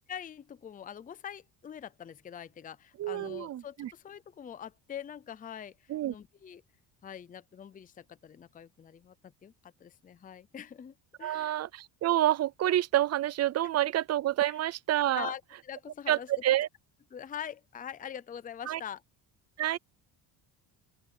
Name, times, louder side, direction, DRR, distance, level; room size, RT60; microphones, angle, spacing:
voice 1, 0.1-6.6 7.0-11.6 14.5-14.6 15.1-16.3 17.1-19.0, left 9 dB, 20° left, 0.6 m, -44 dB
voice 2, 3.0-3.9 5.9-6.1 11.2-15.3 16.1-16.7 18.7-18.8 19.6-19.8, right 13 dB, 40° right, 0.6 m, -28 dB
open air
cardioid pair, 150°, 40 cm